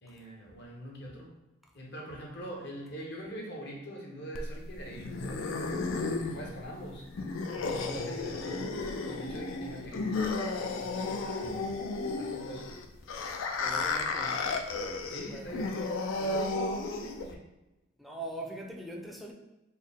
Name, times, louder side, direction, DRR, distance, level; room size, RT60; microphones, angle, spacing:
voice 1, 0.0-1.4 1.7-5.9 6.1-7.1 7.5-11.6 12.0-12.8 15.1-17.5, equal, 60° left, 0 dB, 0.9 m, -43 dB
sound 1, 4.3-17.3, left 3 dB, 80° left, 0.4 m, -33 dB
voice 2, 11.4-11.7 13.5-14.4 15.1-15.6 18.0-19.3, right 1 dB, ahead, 0 dB, 0.4 m, -42 dB
4.2 x 2.0 x 3.6 m, 1.0 s
head